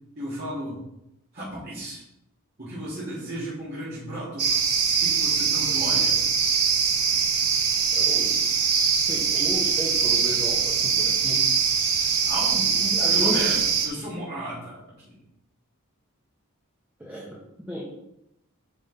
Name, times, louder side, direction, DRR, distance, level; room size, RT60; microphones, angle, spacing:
voice 1, 0.2-0.8 1.3-2.0 2.6-4.6 5.0-6.2 12.3-12.7 13.1-15.2, right 1 dB, 45° right, -10 dB, 3.8 m, -34 dB
sound 1, 4.4-13.9, right 6 dB, 85° right, 1.6 m, -22 dB
voice 2, 7.9-8.3 9.1-11.5 12.8-13.6 17.0-17.8, equal, 10° right, -5 dB, 1.6 m, -34 dB
10.0 x 6.4 x 4.0 m, 0.85 s
head